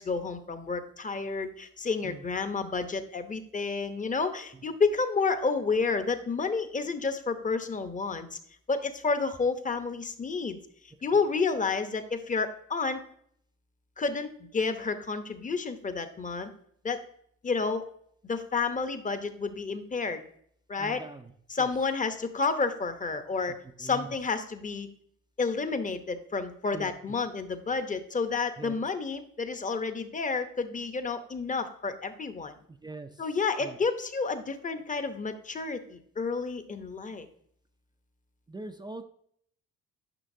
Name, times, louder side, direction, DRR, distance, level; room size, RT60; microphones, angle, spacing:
voice 1, 0.0-8.4 8.7-10.6 11.0-13.0 14.0-16.5 16.8-17.0 17.4-17.9 18.2-20.2 20.7-21.0 21.5-24.9 25.4-32.5 33.2-37.3, left 4 dB, 25° left, 9 dB, 0.8 m, -30 dB
voice 2, 20.8-21.3 21.6-21.7 23.8-24.1 26.7-26.9 28.6-28.7 32.8-33.2 33.6-33.8 38.5-39.0, right 3 dB, 15° right, 6 dB, 0.4 m, -42 dB
9.9 x 5.8 x 2.7 m, 0.65 s
cardioid pair, 90°, 30 cm